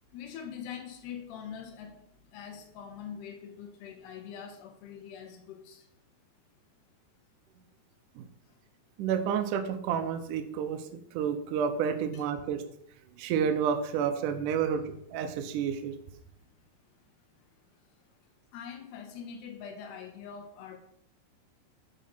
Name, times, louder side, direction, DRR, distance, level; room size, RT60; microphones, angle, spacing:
voice 1, 0.1-2.0 2.3-5.9 12.1-12.2 18.5-20.8, left 7 dB, 85° left, 3 dB, 3.6 m, -43 dB
voice 2, 9.0-12.6 13.2-16.0, right 7 dB, 80° right, 7 dB, 1.9 m, -30 dB
12.5 x 5.2 x 5.6 m, 0.71 s
omnidirectional pair, 4.6 m